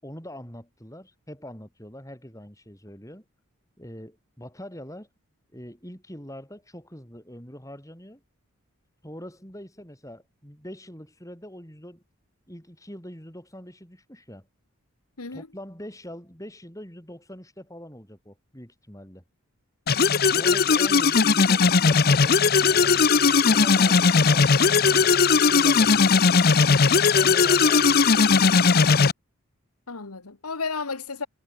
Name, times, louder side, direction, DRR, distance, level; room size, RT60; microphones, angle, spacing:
voice 1, 0.0-3.2 3.8-5.1 5.5-8.2 9.0-12.0 12.5-14.5 15.3-19.2 20.3-23.0 23.4-26.7 27.1-28.8, equal, 15° left, 6.8 m, -42 dB
voice 2, 19.9-20.2 29.9-31.3, left 4 dB, 90° left, 1.7 m, -33 dB
sound 1, 19.9-29.1, left 5 dB, 45° left, 0.7 m, -18 dB
head